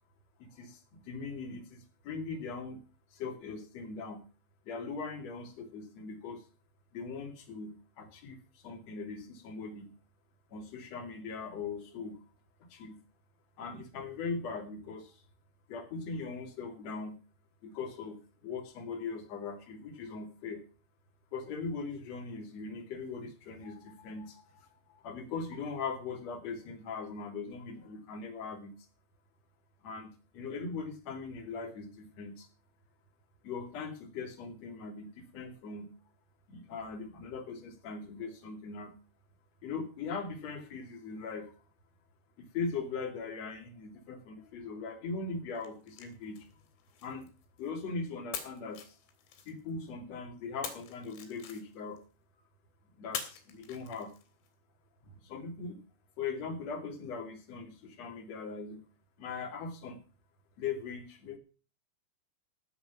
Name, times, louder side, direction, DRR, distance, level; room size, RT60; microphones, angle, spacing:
voice 1, 0.4-2.8 3.1-4.2 4.6-6.4 6.9-9.9 10.5-12.2 12.7-13.0 13.6-15.2 15.7-17.2 17.6-20.6 21.3-28.7 29.8-32.5 33.4-35.9 36.5-38.9 39.6-41.5 42.4-46.5 47.0-47.3 47.6-49.0 49.5-52.0 53.0-54.1 55.2-55.8 56.2-58.8 59.2-60.0 60.6-61.4, left 4 dB, 45° left, 3 dB, 3.1 m, -40 dB
sound 1, 45.6-47.8 48.3-49.9 50.6-52.0 53.1-54.5, left 8 dB, 80° left, 4.7 m, -45 dB
16.5 x 7.0 x 5.9 m, 0.35 s
omnidirectional pair, 5.2 m